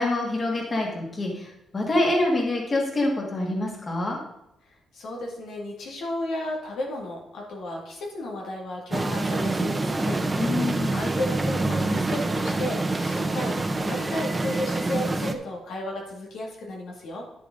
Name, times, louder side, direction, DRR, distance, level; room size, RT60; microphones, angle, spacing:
voice 1, 0.0-4.2 10.4-11.0, left 2 dB, 30° left, -1 dB, 2.3 m, -26 dB
voice 2, 4.6-10.2 10.9-17.3, left 1 dB, 80° left, -1 dB, 2.2 m, -33 dB
sound 1, 8.9-15.3, right 2 dB, 20° right, 0.8 m, -26 dB
11.0 x 6.8 x 3.8 m, 0.84 s
cardioid pair, 115°, 0 cm